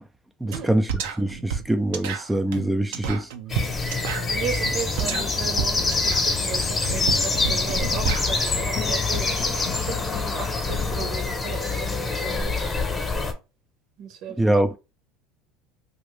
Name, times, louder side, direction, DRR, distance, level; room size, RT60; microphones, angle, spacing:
voice 1, 0.4-3.3 14.4-14.8, right 1 dB, 5° right, 0.3 m, -24 dB
sound 1, 0.5-0.6 0.9-8.5, right 7 dB, 80° right, 0.6 m, -31 dB
Tapping metal cake tin (slow), 3.5-4.6 5.0-11.8, left 9 dB, 55° left, 0.5 m, -36 dB
sound 2, 3.5-13.3, left 3 dB, 25° left, 0.9 m, -25 dB
voice 2, 4.2-9.3 9.7-12.7 14.0-14.4, right 7 dB, 60° right, 1.0 m, -35 dB
2.8 x 2.5 x 3.3 m
supercardioid pair, 100°, 0 cm